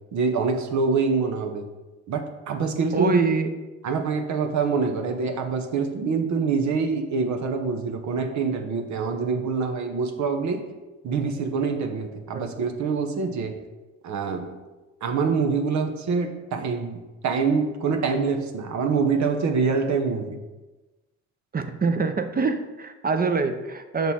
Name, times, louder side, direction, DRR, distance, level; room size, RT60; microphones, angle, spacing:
voice 1, 0.1-1.7 2.1-3.2 3.8-10.7 11.0-13.6 14.0-14.5 15.0-20.4, right 5 dB, 70° right, 6 dB, 1.0 m, -25 dB
voice 2, 2.9-3.5 12.3-12.5 21.5-24.1, right 4 dB, 30° right, 7 dB, 0.7 m, -24 dB
6.2 x 5.3 x 4.2 m, 1.1 s
cardioid pair, 90°, 30 cm